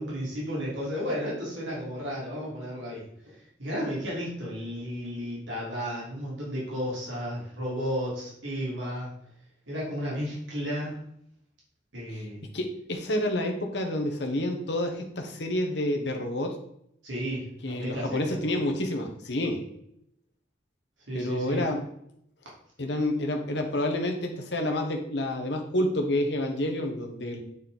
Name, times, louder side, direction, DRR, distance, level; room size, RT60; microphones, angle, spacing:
voice 1, 0.0-9.1 9.7-11.0 11.9-12.4 17.0-18.4 21.1-21.6, equal, 90° right, -5 dB, 3.1 m, -33 dB
voice 2, 12.5-16.6 17.6-19.6 21.1-21.9 22.8-27.4, left 1 dB, 65° left, 3 dB, 1.3 m, -29 dB
9.1 x 4.3 x 3.9 m, 0.72 s
head